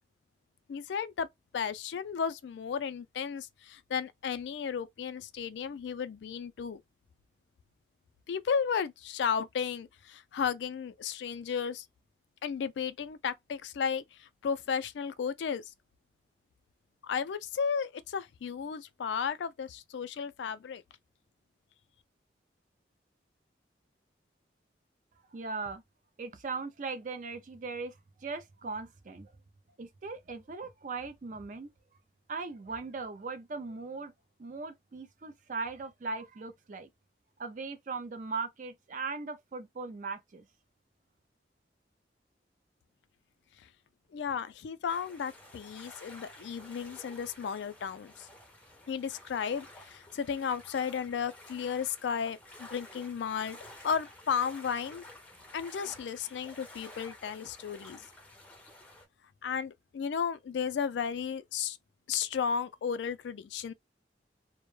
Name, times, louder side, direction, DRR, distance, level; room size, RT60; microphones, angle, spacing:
voice 1, 0.7-1.3 1.5-6.8 8.3-11.9 12.4-15.6 17.0-20.8 44.1-48.3 48.9-53.6 53.8-55.0 55.5-58.0 59.4-61.8 62.1-63.7, left 6 dB, 75° left, 0.3 m, -34 dB
voice 2, 25.3-25.8 26.2-29.3 29.8-31.7 32.3-34.1 34.4-36.9 37.4-40.4, right 4 dB, 45° right, 0.4 m, -39 dB
sound 1, 44.9-59.1, left 1 dB, 10° left, 0.5 m, -52 dB
2.1 x 2.0 x 3.0 m
head